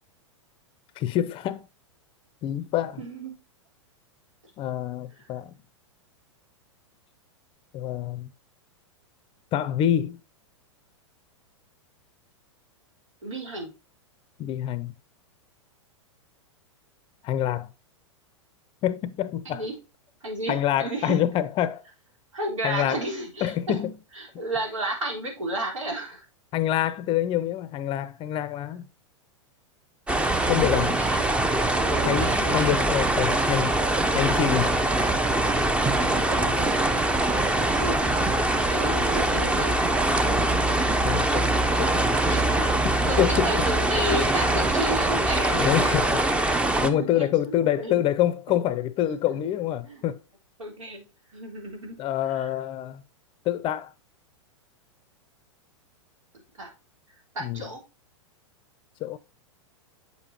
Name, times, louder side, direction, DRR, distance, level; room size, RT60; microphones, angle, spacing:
voice 1, 1.0-1.7 2.4-3.0 4.6-5.5 7.7-8.3 9.5-10.2 14.4-14.9 17.2-17.7 18.8-19.6 20.5-21.8 22.6-23.0 23.4-23.9 26.5-28.8 30.5-30.9 32.1-33.7 34.1-34.8 41.0-41.5 41.8-42.1 43.2-43.5 45.6-46.1 46.8-50.2 52.0-53.0 53.4-53.9 57.4-57.6 59.0-59.2, left 11 dB, 35° left, 0.6 m, -26 dB
voice 2, 3.0-3.3 5.2-5.3 13.2-13.7 19.4-19.7 20.2-21.2 22.3-23.9 24.1-26.3 30.1-31.3 31.7-32.8 35.9-39.8 42.3-42.4 43.1-46.3 46.8-48.0 48.5-48.6 49.3-49.5 49.8-50.0 50.6-51.0 51.3-52.0 52.3-52.5 56.6-56.7 57.3-57.8, right 1 dB, 80° right, 3.9 m, -33 dB
sound 1, 30.1-46.9, right 2 dB, 5° right, 0.6 m, -23 dB
8.2 x 6.8 x 2.9 m
hypercardioid pair, 105°, 16 cm